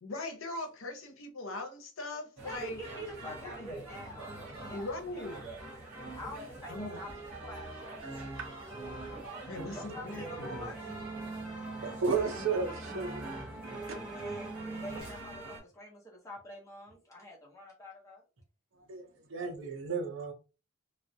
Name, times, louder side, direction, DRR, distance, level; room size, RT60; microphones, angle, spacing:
voice 1, 0.0-3.9 4.7-5.4 6.7-7.0 9.5-10.7, left 2 dB, 80° left, 0.6 m, -41 dB
voice 2, 2.4-5.4 6.1-8.4 9.7-10.8 14.0-18.2, equal, 15° left, 0.8 m, -46 dB
sound 1, 2.4-15.6, right 2 dB, 25° right, 1.1 m, -44 dB
sound 2, 9.5-15.0, right 3 dB, 5° right, 0.3 m, -44 dB
voice 3, 11.8-13.2 13.7-14.2 18.9-20.3, right 5 dB, 70° right, 0.7 m, -34 dB
2.3 x 2.0 x 2.6 m
head